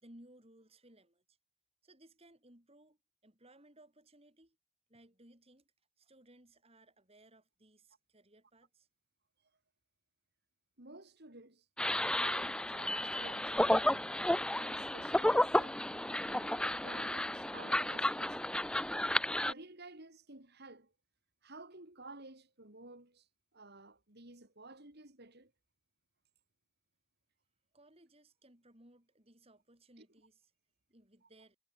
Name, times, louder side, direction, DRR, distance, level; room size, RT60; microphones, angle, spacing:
voice 1, 0.0-1.4 1.8-4.6 4.9-5.7 6.0-8.9 27.7-30.5 30.9-31.6, right 1 dB, 25° right, 5.1 m, -62 dB
voice 2, 10.8-14.2 14.5-18.4 19.4-20.9 21.4-23.3 23.5-25.5 30.0-30.1, right 2 dB, 50° right, 3.2 m, -53 dB
sound 1, 11.8-19.5, left 1 dB, 5° left, 0.5 m, -32 dB
head